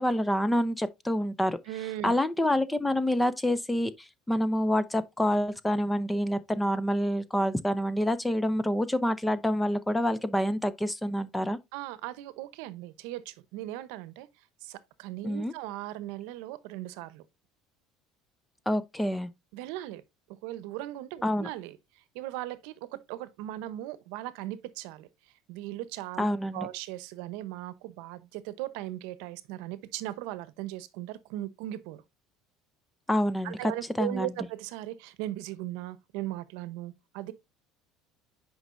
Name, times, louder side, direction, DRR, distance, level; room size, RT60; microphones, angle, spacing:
voice 1, 0.0-1.6 2.0-11.6 15.2-15.5 18.7-19.3 21.2-21.5 26.2-26.7 33.1-33.6 34.0-34.3, equal, 5° left, 0.5 m, -27 dB
voice 2, 1.7-2.2 11.7-14.3 14.6-17.2 19.5-20.0 20.4-21.8 22.1-25.1 25.5-26.3 26.5-32.0 33.4-37.3, right 15 dB, 75° right, 0.8 m, -38 dB
9.2 x 5.2 x 2.6 m
cardioid pair, 160°, 0 cm